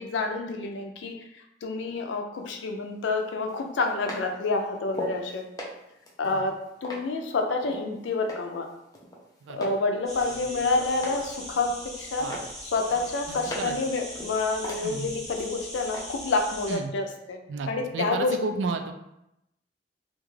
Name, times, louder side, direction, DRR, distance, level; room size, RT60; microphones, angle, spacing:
voice 1, 0.0-5.4 6.2-6.5 6.8-8.7 9.5-12.3 12.7-17.4 17.7-18.4, left 3 dB, 85° left, 4 dB, 0.4 m, -28 dB
sound 1, 2.4-2.5 3.5-5.2 5.6-7.9 8.3-8.7 8.9-9.8 10.2-11.3 11.6-12.0 12.3-13.8 14.2-15.5 15.9-16.0, equal, 20° left, 0.4 m, -39 dB
sound 2, 10.1-16.8, equal, ahead, 0.8 m, -40 dB
voice 2, 13.3-13.8 14.8-15.1 16.7-16.9 17.5-18.9, right 4 dB, 85° right, 6 dB, 0.3 m, -32 dB
2.4 x 2.3 x 3.1 m, 0.84 s
head